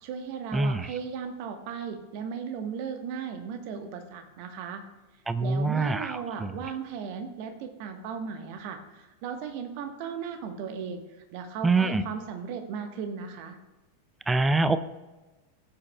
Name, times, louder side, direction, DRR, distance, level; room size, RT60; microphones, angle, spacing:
voice 1, 0.0-4.8 5.4-11.0 11.3-13.6, right 6 dB, 45° right, 6 dB, 1.3 m, -36 dB
voice 2, 0.5-0.9 5.3-6.5 11.6-12.0 14.3-14.8, right 3 dB, 10° right, 13 dB, 0.5 m, -25 dB
16.5 x 8.4 x 2.3 m, 1.1 s
figure-of-eight pair, 90°, 0 cm